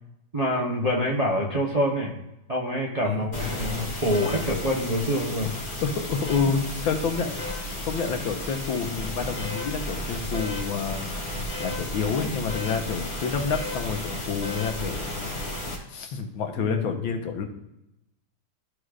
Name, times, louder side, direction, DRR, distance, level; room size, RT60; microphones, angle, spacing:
voice 1, 0.3-2.1 2.5-5.6 10.2-10.4 16.6-16.8, equal, 30° right, -2 dB, 0.7 m, -26 dB
sound 1, 3.3-15.8, left 1 dB, 50° left, 2.9 m, -33 dB
voice 2, 5.8-15.1 15.9-17.4, left 6 dB, 80° left, 4 dB, 1.8 m, -29 dB
14.0 x 4.9 x 2.5 m, 0.88 s
omnidirectional pair, 2.2 m